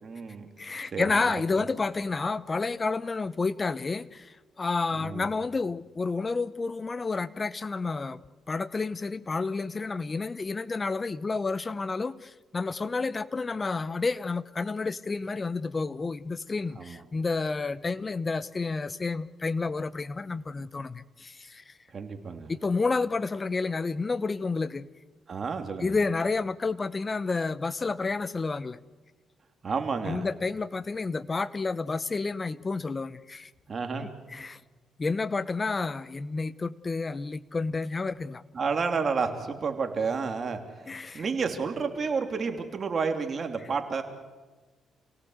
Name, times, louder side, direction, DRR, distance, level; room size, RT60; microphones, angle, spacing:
voice 1, 0.0-0.5 0.9-1.4 5.0-5.3 16.8-17.0 21.9-22.5 25.3-26.0 29.6-30.3 33.7-34.1 38.5-44.0, right 5 dB, 40° right, 5 dB, 3.1 m, -31 dB
voice 2, 0.6-8.2 8.5-21.7 22.5-24.9 25.8-28.8 30.1-33.5 34.0-34.6 35.0-38.4 40.9-41.2, left 4 dB, 30° left, 17 dB, 0.9 m, -30 dB
28.0 x 17.5 x 8.1 m, 1.3 s
cardioid pair, 90°, 0 cm